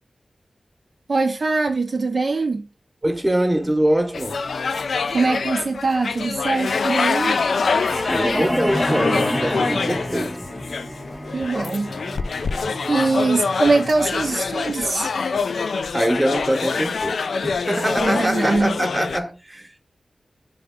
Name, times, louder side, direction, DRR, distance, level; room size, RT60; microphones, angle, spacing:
voice 1, 1.1-2.7 5.1-7.4 11.3-11.9 12.9-15.1 18.0-18.8, right 3 dB, 65° right, 0.5 m, -22 dB
voice 2, 3.0-4.4 8.1-10.5 15.9-19.8, right 1 dB, 20° right, 1.0 m, -23 dB
sound 1, 4.1-19.2, left 5 dB, 85° left, 0.3 m, -25 dB
sound 2, 7.1-15.1, equal, 5° left, 0.6 m, -29 dB
3.6 x 3.5 x 3.6 m
cardioid pair, 40°, 0 cm